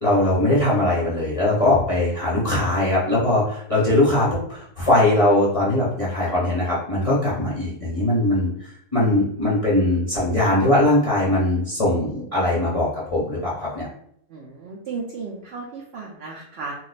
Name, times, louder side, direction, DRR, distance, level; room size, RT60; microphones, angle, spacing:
voice 1, 0.0-8.5 8.9-13.9, left 1 dB, 35° left, -7 dB, 0.6 m, -20 dB
voice 2, 14.3-16.7, right 4 dB, 70° right, -1 dB, 0.6 m, -34 dB
2.5 x 2.3 x 3.9 m, 0.70 s
omnidirectional pair, 1.6 m